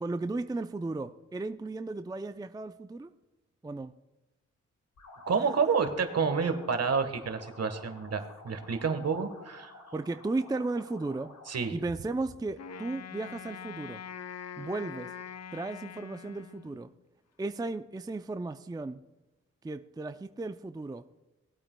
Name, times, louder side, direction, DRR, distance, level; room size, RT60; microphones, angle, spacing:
voice 1, 0.0-3.1 3.6-3.9 9.9-11.4 11.7-14.0 14.6-15.1 15.5-16.9 17.4-19.0 19.6-21.0, right 3 dB, 15° right, 10 dB, 0.5 m, -35 dB
sound 1, 5.0-11.8, left 2 dB, 75° left, 3.0 m, -51 dB
voice 2, 5.3-9.7 11.5-11.7, right 5 dB, 55° right, 8 dB, 1.4 m, -29 dB
Wind instrument woodwind instrument, 12.6-17.0, left 7 dB, 60° left, 0.7 m, -44 dB
19.5 x 8.6 x 2.2 m, 1.1 s
cardioid pair, 55°, 30 cm